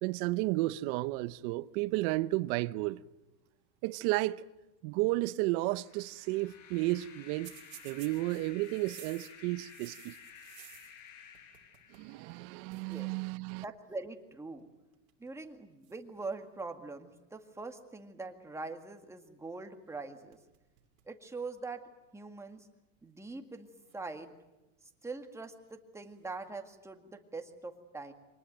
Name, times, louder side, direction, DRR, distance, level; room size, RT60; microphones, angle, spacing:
voice 1, 0.0-3.0 3.8-4.4 4.8-7.5 7.8-10.1 11.9-13.6, right 19 dB, 50° right, 0.8 m, -32 dB
sound 1, 5.5-12.5, left 8 dB, 70° left, 6.1 m, -54 dB
sound 2, 7.4-11.1 11.3-12.1 12.4-12.5 12.7-13.0 13.9-14.2 14.9-15.3 15.8-16.9 19.9-20.0 20.3-21.1 21.6-21.7 22.6-22.7 23.8-24.7 25.9-26.5, right 14 dB, 90° right, 2.8 m, -56 dB
voice 2, 12.7-13.1 13.6-14.7 15.2-20.4 21.1-21.8 22.1-22.7 23.0-23.7 23.9-24.3 25.0-28.1, right 3 dB, 5° right, 2.0 m, -43 dB
25.0 x 19.5 x 9.1 m
supercardioid pair, 135°, 40 cm